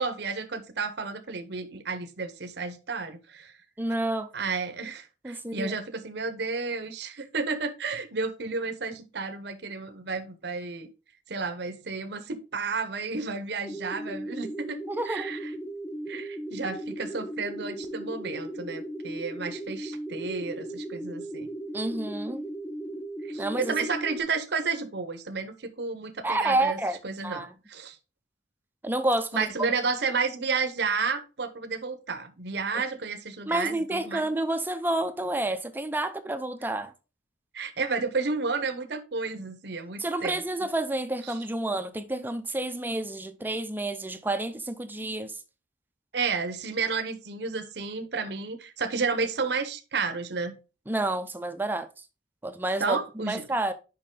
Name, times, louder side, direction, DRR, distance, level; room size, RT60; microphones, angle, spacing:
voice 1, 0.0-3.5 4.3-10.9 11.3-14.8 15.1-15.5 16.1-21.5 23.2-26.8 27.0-28.0 29.3-34.3 37.5-40.4 41.3-41.4 46.1-50.6 52.8-53.4, right 4 dB, 60° right, 0.8 m, -31 dB
voice 2, 3.8-4.3 5.2-5.8 14.9-15.3 21.7-22.5 23.4-23.7 26.2-27.0 27.2-27.5 28.8-29.7 32.7-32.8 33.5-36.9 40.0-45.4 50.9-52.0 52.4-53.7, right 1 dB, 10° right, 0.5 m, -29 dB
sound 1, 13.6-24.2, right 1 dB, 15° left, 0.9 m, -37 dB
6.6 x 5.4 x 3.7 m
head